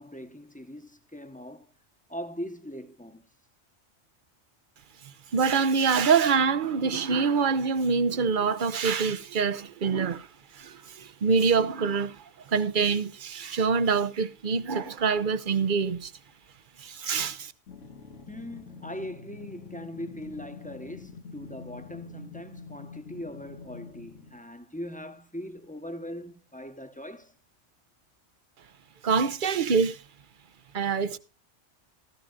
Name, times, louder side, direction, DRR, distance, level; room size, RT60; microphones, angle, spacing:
voice 1, 0.0-1.7 2.1-3.2 18.3-27.3, equal, 5° left, 1.0 m, -40 dB
voice 2, 5.3-10.3 10.5-12.2 12.5-16.1 16.8-17.5 29.0-30.0 30.7-31.2, right 5 dB, 50° right, 0.9 m, -25 dB
sound 1, 17.7-24.4, left 5 dB, 85° left, 2.5 m, -45 dB
16.0 x 13.5 x 2.4 m
omnidirectional pair, 1.2 m